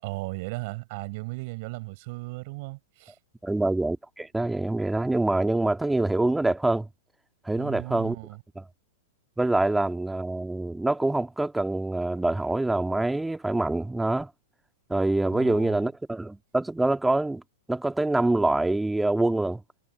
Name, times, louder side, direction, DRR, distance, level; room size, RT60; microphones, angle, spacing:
voice 1, 0.0-3.2 7.6-8.4 15.3-15.9, right 25 dB, 55° right, 5.8 m, -36 dB
voice 2, 3.4-6.9 7.5-8.2 9.4-14.3 14.9-17.4 17.7-19.6, right 2 dB, 5° right, 2.0 m, -25 dB
hypercardioid pair, 115°, 0 cm